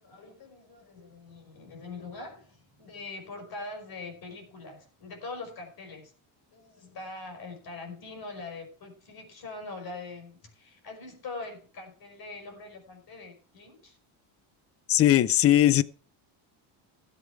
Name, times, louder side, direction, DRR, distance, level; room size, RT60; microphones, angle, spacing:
voice 1, 0.0-6.1 6.5-14.0, left 3 dB, 45° left, 5.1 m, -43 dB
voice 2, 14.9-15.8, left 13 dB, 30° left, 0.5 m, -19 dB
16.0 x 8.2 x 4.7 m
cardioid pair, 155°, 49 cm